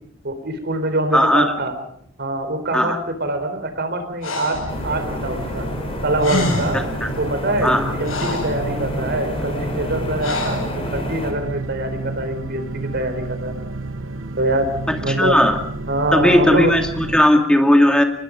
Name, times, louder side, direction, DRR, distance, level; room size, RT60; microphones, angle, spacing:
voice 1, 0.2-1.8 2.2-5.7 6.0-6.8 7.2-12.6 12.9-13.6 14.4-14.7 15.0-15.4 15.9-16.7, right 1 dB, 55° right, 8 dB, 4.0 m, -24 dB
voice 2, 1.1-1.5 2.7-3.0 7.0-7.1 7.6-7.8 14.9-15.6 16.1-18.0, left 1 dB, 5° left, 4 dB, 2.5 m, -16 dB
Breathing, 4.2-4.7 5.9-6.0 6.2-6.9 7.6-8.6 10.2-10.7, left 2 dB, 80° left, 7.4 m, -26 dB
sound 1, 4.5-17.2, right 2 dB, 70° right, 1.2 m, -31 dB
sound 2, 4.7-11.3, left 1 dB, 30° left, 4.6 m, -30 dB
25.5 x 21.0 x 5.2 m, 0.65 s
head